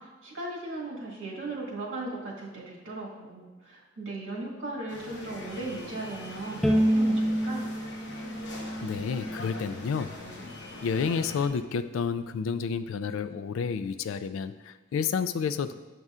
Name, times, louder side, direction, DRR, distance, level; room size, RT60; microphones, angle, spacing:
voice 1, 0.0-7.7, right 2 dB, 75° right, -4 dB, 1.6 m, -37 dB
sound 1, 4.9-11.5, left 2 dB, 60° left, 0.9 m, -43 dB
Bowed string instrument, 6.6-9.8, equal, ahead, 0.4 m, -28 dB
voice 2, 8.8-10.1 10.8-15.7, left 6 dB, 90° left, 12 dB, 0.3 m, -30 dB
7.6 x 5.4 x 2.4 m, 1.2 s
head